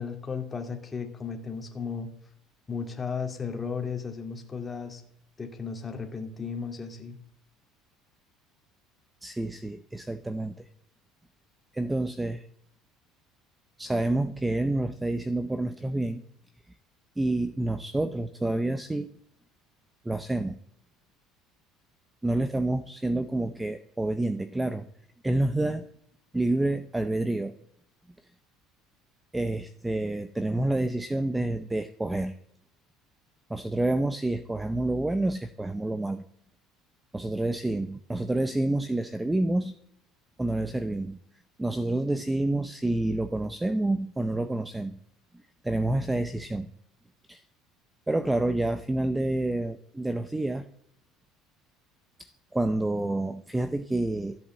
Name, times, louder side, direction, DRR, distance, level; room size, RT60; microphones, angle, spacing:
voice 1, 0.0-2.1 2.7-5.0 5.4-7.2, left 5 dB, 15° left, 3 dB, 2.1 m, -35 dB
voice 2, 9.2-10.7 11.7-12.5 13.8-16.2 17.2-19.1 20.0-20.6 22.2-24.9 25.2-25.9 26.3-27.5 29.3-32.4 33.5-36.2 37.1-39.7 40.4-41.2 41.6-45.0 45.6-46.7 47.3-47.4 48.1-50.6 52.2-54.4, right 2 dB, 5° right, 11 dB, 0.5 m, -28 dB
14.0 x 8.1 x 7.3 m, 0.72 s
cardioid pair, 150°, 0 cm